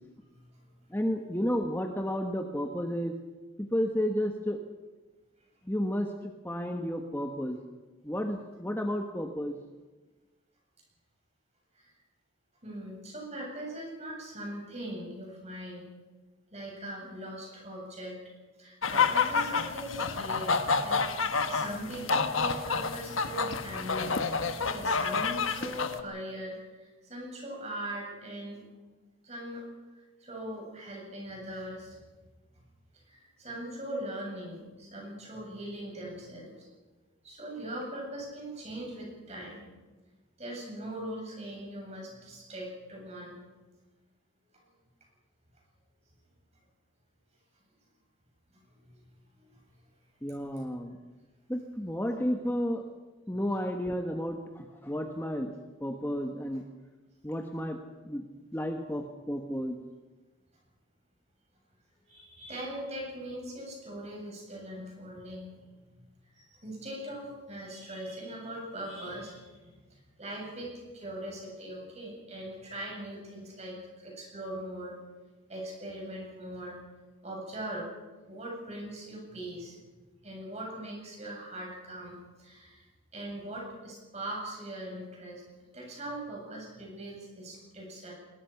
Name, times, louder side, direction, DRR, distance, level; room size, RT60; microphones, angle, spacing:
voice 1, 0.3-0.6 11.7-11.9 12.6-15.9 16.5-18.2 18.6-24.2 24.5-28.6 29.2-29.6 30.2-32.0 32.5-32.6 33.1-36.7 37.2-39.6 40.4-43.4 48.5-49.1 49.4-49.6 62.0-65.6 65.9-66.0 66.3-74.9 75.5-76.8 77.2-77.9 78.3-79.8 80.2-82.9 83.1-85.4 85.7-88.1, right 1 dB, 35° right, -1 dB, 8.0 m, -41 dB
voice 2, 0.9-3.2 3.6-4.6 5.6-7.6 8.0-9.6 50.2-51.0 51.5-52.8 53.3-56.6 57.2-57.8 58.0-58.2 58.5-59.8, equal, 10° left, 3 dB, 1.2 m, -32 dB
sound 1, 18.8-26.0, left 5 dB, 85° left, 1.3 m, -29 dB
21.5 x 21.5 x 5.9 m, 1.2 s
head